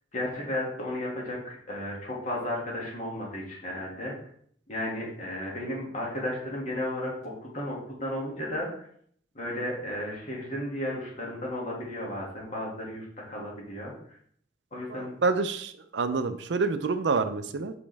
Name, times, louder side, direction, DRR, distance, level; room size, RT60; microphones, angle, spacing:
voice 1, 0.1-4.1 4.7-8.9 9.3-13.9 14.7-15.2, left 1 dB, 45° left, -3 dB, 2.2 m, -34 dB
voice 2, 14.9-17.7, right 4 dB, 85° right, 11 dB, 0.5 m, -28 dB
6.0 x 5.3 x 3.4 m, 0.63 s
head